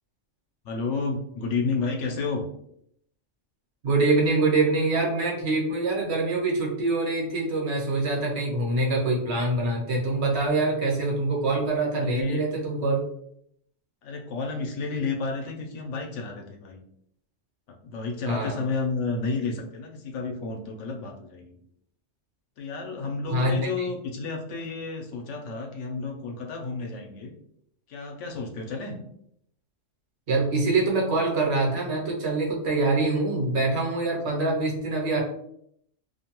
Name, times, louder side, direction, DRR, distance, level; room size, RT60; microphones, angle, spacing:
voice 1, 0.6-2.4 12.0-12.4 14.0-16.8 17.8-21.6 22.6-27.3 27.9-29.0, left 4 dB, 75° left, 2 dB, 0.9 m, -31 dB
voice 2, 3.8-13.1 18.3-18.6 23.3-23.9 30.3-35.2, right 2 dB, 60° right, -2 dB, 1.0 m, -25 dB
2.5 x 2.2 x 2.9 m, 0.71 s
omnidirectional pair, 1.3 m